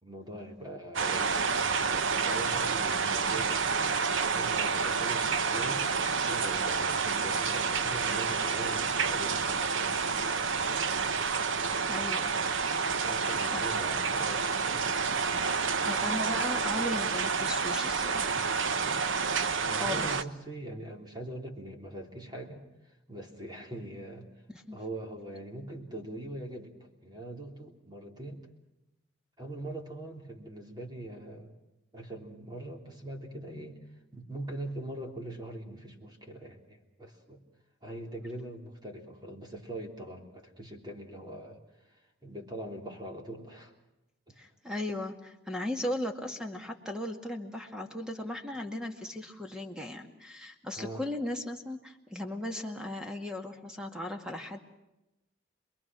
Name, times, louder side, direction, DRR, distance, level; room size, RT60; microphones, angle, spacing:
voice 1, 0.0-3.6 4.3-10.2 12.8-14.8 19.5-24.3 24.7-28.5 29.4-31.5 31.9-33.8 34.1-37.4 37.8-41.6 41.8-43.7 44.3-44.4 50.7-51.0, right 1 dB, 20° right, 2 dB, 3.3 m, -42 dB
sound 1, 0.9-20.2, right 5 dB, 70° right, 0.9 m, -29 dB
voice 2, 11.9-12.7 13.5-13.6 15.8-18.4 19.4-20.2 24.5-24.8 44.4-54.6, left 1 dB, 5° right, 4 dB, 2.0 m, -37 dB
28.0 x 21.5 x 6.2 m, 0.96 s
head